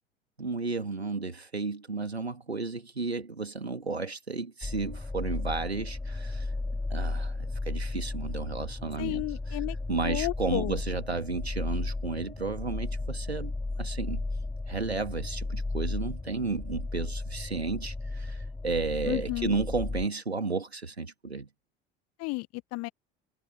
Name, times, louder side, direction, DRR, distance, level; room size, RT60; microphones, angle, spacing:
voice 1, 0.4-6.5 6.9-9.2 9.9-14.2 14.7-21.5, right 3 dB, 85° right, 2.8 m, -33 dB
sound 1, 4.6-20.1, left 2 dB, 10° left, 3.5 m, -34 dB
voice 2, 9.0-9.8 10.0-10.8 19.0-19.6 22.2-22.9, left 24 dB, 55° left, 1.4 m, -32 dB
figure-of-eight pair, 60°, 31 cm